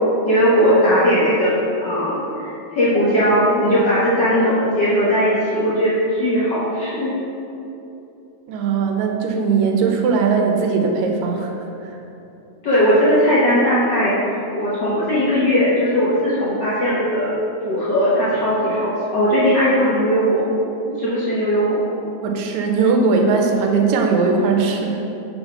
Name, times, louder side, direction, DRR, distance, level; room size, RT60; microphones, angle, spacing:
voice 1, 0.2-7.1 12.6-14.1 14.6-17.4 17.6-20.4 21.0-21.8, equal, 60° left, -10 dB, 1.2 m, -18 dB
voice 2, 8.5-12.0 22.2-25.0, right 4 dB, 80° right, 3 dB, 2.0 m, -19 dB
7.1 x 3.6 x 5.6 m, 2.9 s
omnidirectional pair, 3.3 m